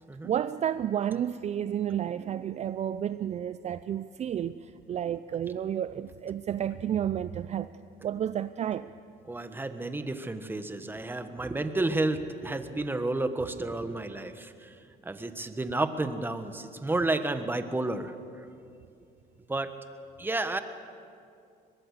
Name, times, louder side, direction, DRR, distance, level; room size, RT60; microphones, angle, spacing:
voice 1, 0.2-7.7 8.0-8.9, right 10 dB, 40° right, 0.5 m, -31 dB
voice 2, 9.3-14.7 15.0-18.1 19.5-19.7 20.2-20.6, right 2 dB, 10° right, 1.4 m, -31 dB
23.5 x 21.0 x 6.6 m
cardioid pair, 110°, 17 cm